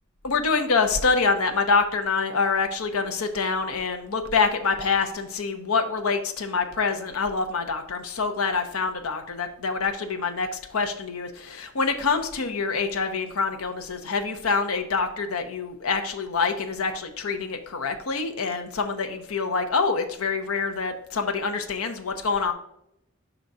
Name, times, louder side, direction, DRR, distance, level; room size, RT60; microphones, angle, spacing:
voice 1, 0.2-22.5, left 4 dB, 75° left, 6 dB, 0.8 m, -26 dB
5.2 x 4.0 x 5.8 m, 0.79 s
head